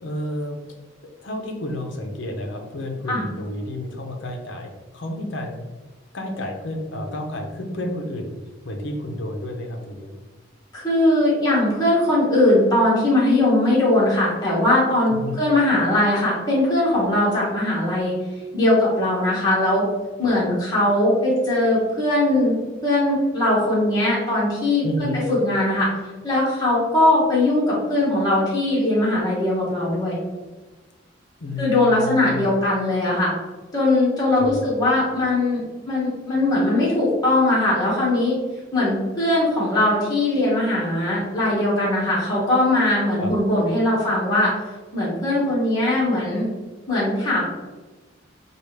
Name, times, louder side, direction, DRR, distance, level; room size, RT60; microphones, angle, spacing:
voice 1, 0.0-0.6 1.2-5.6 6.1-8.4 8.6-10.1 15.1-15.4 24.8-25.2 31.4-32.5 34.4-34.7 43.2-43.3, left 1 dB, 65° left, 3 dB, 0.7 m, -30 dB
voice 2, 10.7-18.2 18.5-19.9 20.2-25.9 26.2-30.2 31.6-33.3 33.7-38.3 38.7-44.5 44.9-46.4 46.9-47.4, left 1 dB, 20° left, -7 dB, 1.3 m, -20 dB
4.9 x 2.4 x 3.2 m, 1.2 s
head